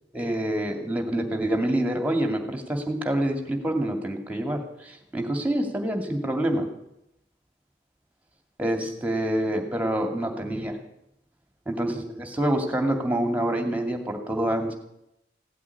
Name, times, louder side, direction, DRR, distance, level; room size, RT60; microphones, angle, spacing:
voice 1, 0.1-4.6 5.1-6.7 8.6-10.7 11.7-14.7, right 1 dB, 10° right, 4 dB, 2.4 m, -26 dB
16.5 x 8.5 x 9.8 m, 0.81 s
head